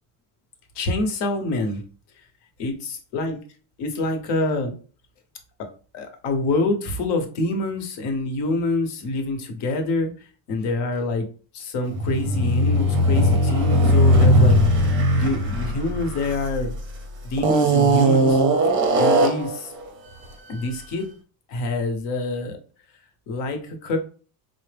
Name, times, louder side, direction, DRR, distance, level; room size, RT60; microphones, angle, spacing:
voice 1, 0.7-1.8 2.6-3.4 3.8-4.7 5.6-10.1 10.5-11.3 11.5-14.9 15.1-16.7 17.2-18.4 19.0-19.7 20.5-21.1 21.5-22.6 23.3-24.0, left 2 dB, 60° left, 5 dB, 1.0 m, -26 dB
sound 1, 11.9-16.8 17.4-19.6, equal, 25° right, 0.6 m, -18 dB
4.4 x 2.1 x 3.3 m, 0.39 s
cardioid pair, 150°, 46 cm